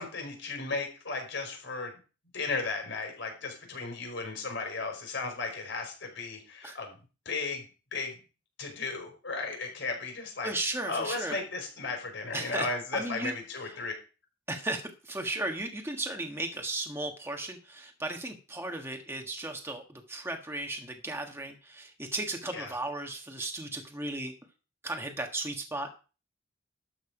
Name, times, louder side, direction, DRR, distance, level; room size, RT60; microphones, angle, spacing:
voice 1, 0.0-1.9 2.3-7.0 7.3-7.6 7.9-8.1 8.6-13.9 22.5-22.8, left 3 dB, 65° left, 3 dB, 5.2 m, -35 dB
voice 2, 10.4-11.4 12.3-12.7 12.9-13.3 13.8-13.9 14.5-24.3 24.8-25.9, right 2 dB, 15° right, 3 dB, 1.5 m, -35 dB
12.5 x 8.0 x 4.9 m, 0.34 s
head